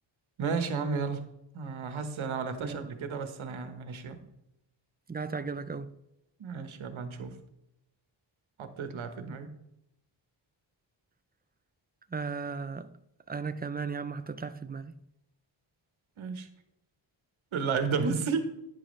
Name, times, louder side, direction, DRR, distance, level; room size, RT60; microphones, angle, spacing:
voice 1, 0.4-1.3 1.5-4.2 6.4-7.4 8.6-9.5 16.2-16.5 17.5-18.5, right 5 dB, 85° right, 1.3 m, -32 dB
voice 2, 5.1-5.9 12.1-12.9 13.3-14.9, right 5 dB, 20° right, 0.5 m, -36 dB
11.5 x 9.7 x 3.2 m
wide cardioid pair, 105°, 47 cm